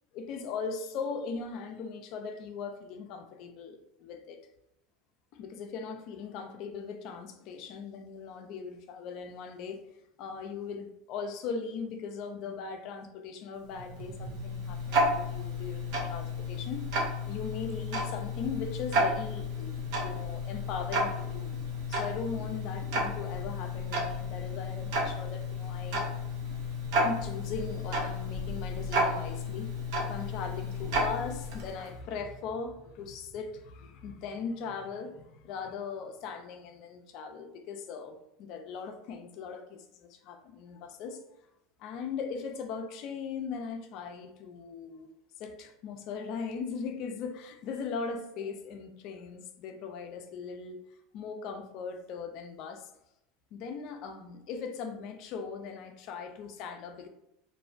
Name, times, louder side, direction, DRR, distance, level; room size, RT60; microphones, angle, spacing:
voice 1, 0.1-4.4 5.3-9.8 10.2-21.5 21.9-26.0 27.0-29.7 30.0-41.2 41.8-45.1 45.4-50.8 51.1-52.9 53.5-57.1, left 5 dB, 60° left, 6 dB, 0.4 m, -39 dB
Tick-tock, 13.6-31.9, left 1 dB, 70° right, 0.6 m, -32 dB
2.5 x 2.0 x 2.5 m, 0.83 s
supercardioid pair, 105°, 0 cm